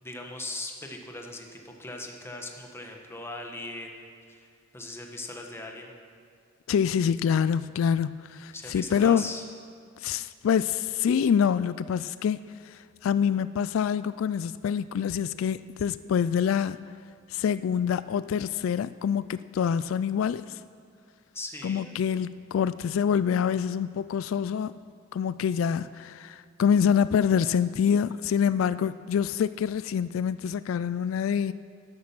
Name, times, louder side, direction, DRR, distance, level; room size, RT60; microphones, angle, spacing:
voice 1, 0.0-4.5 4.7-5.9 8.5-9.4 21.3-21.9, left 2 dB, 15° left, 1.4 m, -39 dB
voice 2, 6.7-9.3 10.0-16.8 17.3-20.6 21.6-24.7 25.1-31.5, left 7 dB, 85° left, 0.3 m, -26 dB
12.5 x 11.5 x 6.0 m
head